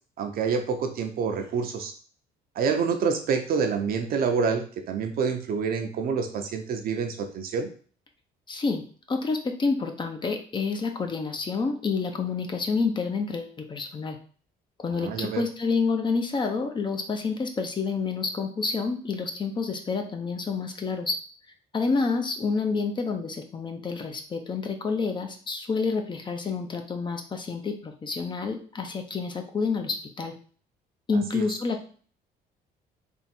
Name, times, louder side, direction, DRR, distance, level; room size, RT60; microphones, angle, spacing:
voice 1, 0.2-1.9 2.5-7.7 14.9-15.4 31.1-31.5, right 5 dB, 60° right, 5 dB, 0.8 m, -27 dB
voice 2, 8.5-14.2 14.8-21.2 21.7-30.3 31.1-31.9, left 4 dB, 25° left, 5 dB, 0.6 m, -28 dB
3.6 x 2.5 x 4.4 m, 0.43 s
cardioid pair, 110°, 17 cm